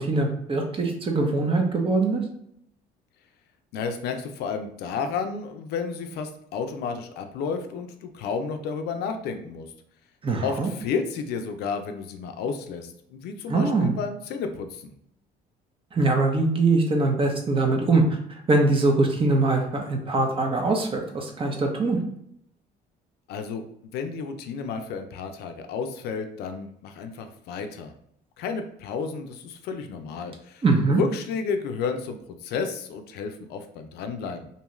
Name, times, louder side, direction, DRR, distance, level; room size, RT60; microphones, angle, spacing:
voice 1, 0.0-2.2 10.2-10.7 13.5-13.9 15.9-18.2 18.5-22.0 30.6-31.0, right 3 dB, 30° right, 2 dB, 0.7 m, -22 dB
voice 2, 3.7-9.7 10.4-14.9 23.3-23.6 23.9-27.9 28.4-30.6 31.0-34.5, left 5 dB, 75° left, 7 dB, 0.4 m, -31 dB
2.7 x 2.3 x 3.0 m, 0.70 s
cardioid pair, 110°, 17 cm